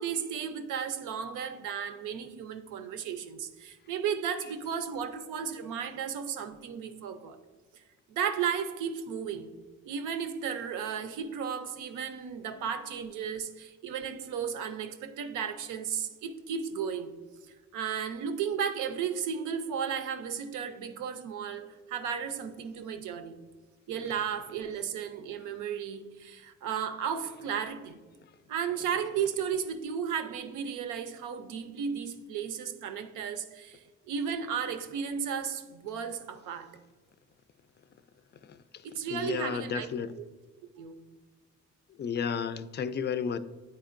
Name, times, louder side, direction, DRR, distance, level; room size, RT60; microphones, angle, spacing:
voice 1, 0.0-7.4 8.1-9.5 9.8-17.2 17.7-23.4 23.9-28.0 28.5-36.7 38.8-39.9 40.1-40.3 40.7-41.1, right 7 dB, 90° right, 0.6 m, -34 dB
voice 2, 39.1-40.1 42.0-43.4, left 7 dB, 35° left, 0.4 m, -32 dB
9.5 x 4.3 x 2.5 m
cardioid pair, 90°, 30 cm